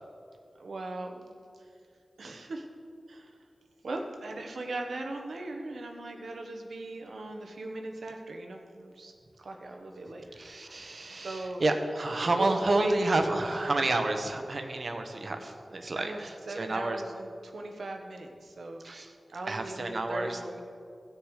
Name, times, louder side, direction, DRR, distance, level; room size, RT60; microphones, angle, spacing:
voice 1, 0.6-1.2 2.2-2.7 3.1-3.3 3.8-10.4 11.2-11.6 12.3-13.9 15.9-18.8 19.3-20.6, right 2 dB, 85° right, 3 dB, 1.1 m, -39 dB
voice 2, 10.4-17.0 18.8-19.1 19.5-20.4, right 2 dB, 55° right, 5 dB, 1.0 m, -30 dB
15.0 x 6.6 x 4.9 m, 2.5 s
wide cardioid pair, 65°, 0 cm